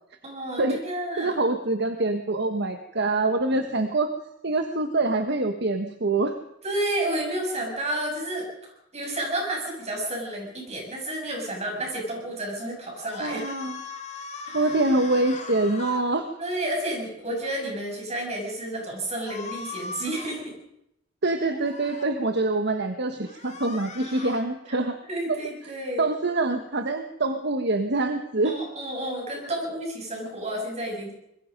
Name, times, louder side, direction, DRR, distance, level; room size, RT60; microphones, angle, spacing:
voice 1, 0.2-1.3 6.6-8.5 8.9-13.5 14.5-14.7 16.4-20.5 25.1-26.1 28.4-31.1, right 1 dB, 35° right, 0 dB, 7.6 m, -31 dB
voice 2, 1.2-4.1 4.4-6.4 13.2-13.8 14.5-16.3 21.2-24.9 25.3-25.4 26.0-28.6, right 2 dB, 55° right, 6 dB, 1.3 m, -25 dB
sound 1, 13.0-16.0 19.1-20.4 21.5-22.1 23.2-24.4, left 5 dB, 35° left, 2.7 m, -39 dB
25.0 x 21.0 x 5.3 m, 0.84 s
head